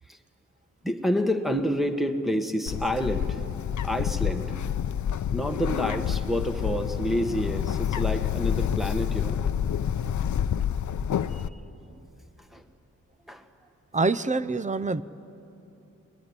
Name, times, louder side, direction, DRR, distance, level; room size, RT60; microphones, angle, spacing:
voice 1, 0.8-3.4 3.8-4.5 5.3-9.4 12.4-12.6 13.3-13.5, equal, ahead, 8 dB, 1.4 m, -28 dB
Bird, 2.7-11.5, left 9 dB, 65° left, 0.7 m, -28 dB
voice 2, 13.9-15.0, right 3 dB, 25° right, 16 dB, 0.6 m, -26 dB
22.5 x 21.5 x 9.7 m, 2.9 s
wide cardioid pair, 115°, 31 cm